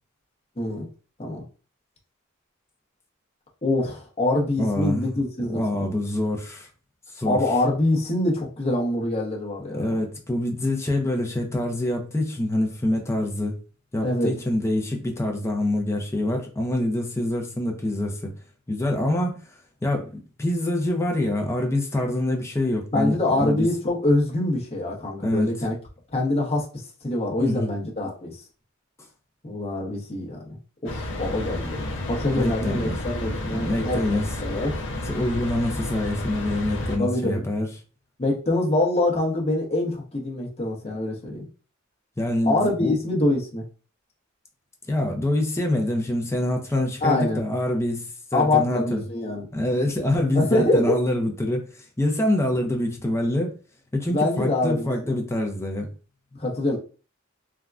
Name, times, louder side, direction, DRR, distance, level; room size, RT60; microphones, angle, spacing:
voice 1, 0.6-0.9 1.2-1.4 3.6-5.9 7.2-9.8 14.0-14.3 22.9-25.7 26.1-26.6 27.0-28.4 29.4-30.4 30.8-31.8 32.0-34.7 37.0-37.4 38.2-41.4 42.4-43.6 47.0-47.4 48.3-49.5 50.3-51.0 54.1-54.9 56.4-56.8, left 2 dB, 30° left, 0.8 m, -24 dB
voice 2, 4.6-5.1 5.5-6.7 7.1-7.4 9.7-13.6 13.9-18.3 18.7-19.4 19.8-20.1 20.4-23.7 25.2-25.5 27.4-27.7 32.3-33.0 33.5-34.3 34.9-37.7 42.2-43.0 44.9-49.0 49.5-53.5 53.9-55.9, left 1 dB, 15° left, 0.5 m, -25 dB
sound 1, 30.9-37.0, left 1 dB, 60° left, 0.6 m, -31 dB
3.4 x 2.1 x 2.4 m
head